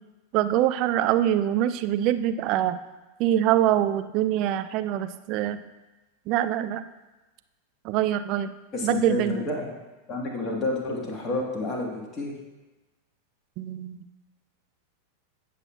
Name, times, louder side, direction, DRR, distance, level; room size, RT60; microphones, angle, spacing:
voice 1, 0.3-2.8 3.2-5.6 6.3-6.8 7.8-8.5 8.8-9.5 13.6-14.0, right 12 dB, 40° right, 11 dB, 0.4 m, -24 dB
voice 2, 8.7-9.7 10.1-12.3, left 2 dB, 25° left, -1 dB, 1.5 m, -29 dB
16.5 x 5.8 x 2.4 m, 1.1 s
figure-of-eight pair, 90°, 0 cm